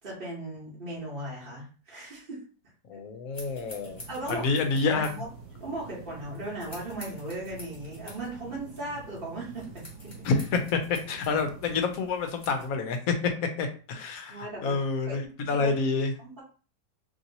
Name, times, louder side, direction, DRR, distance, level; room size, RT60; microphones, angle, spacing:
voice 1, 0.0-2.4 4.1-4.5 4.8-5.3 5.6-10.3 14.3-14.8 15.1-15.2 15.4-15.7 16.2-16.4, right 2 dB, 40° right, -6 dB, 1.1 m, -37 dB
voice 2, 2.9-4.0 4.3-5.1 10.2-13.3 13.6-16.1, left 4 dB, 70° left, 6 dB, 1.0 m, -28 dB
sound 1, 3.3-12.7, left 1 dB, 40° left, 1.4 m, -50 dB
sound 2, 3.8-11.8, right 4 dB, 70° right, 1.0 m, -48 dB
3.0 x 2.7 x 2.7 m, 0.37 s
omnidirectional pair, 1.7 m